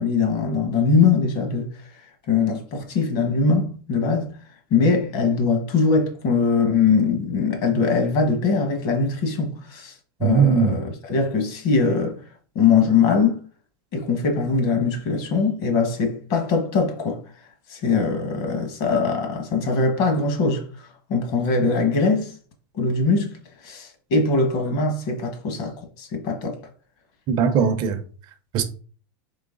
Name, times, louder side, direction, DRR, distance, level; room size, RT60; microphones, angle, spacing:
voice 1, 0.0-1.7 2.3-4.3 4.7-9.9 10.2-12.2 12.5-13.4 13.9-17.2 17.7-22.3 22.8-23.3 23.6-26.6, left 4 dB, 50° left, 1.2 m, -21 dB
voice 2, 10.2-10.8 27.3-28.0 28.5-28.6, right 6 dB, 40° right, 0.5 m, -19 dB
3.9 x 3.1 x 3.8 m
supercardioid pair, 145°, 12 cm